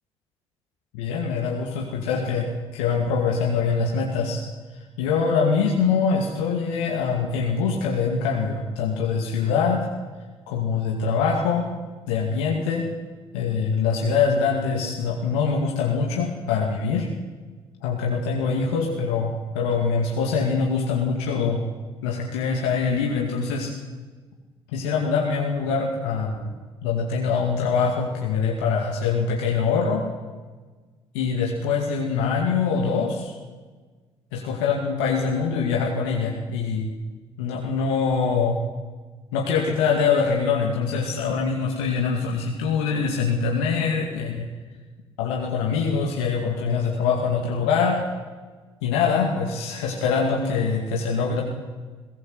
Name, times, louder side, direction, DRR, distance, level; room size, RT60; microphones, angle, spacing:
voice 1, 0.9-2.5 2.7-4.4 5.0-9.9 10.5-11.6 12.1-12.8 13.3-17.1 17.8-21.6 22.0-23.7 24.7-26.5 26.8-30.0 31.1-33.3 34.3-36.9 37.4-38.6 39.3-44.5 45.2-48.0 48.8-51.4, left 5 dB, 75° left, -1 dB, 2.3 m, -24 dB
21.0 x 17.5 x 7.9 m, 1.4 s
hypercardioid pair, 50°, 14 cm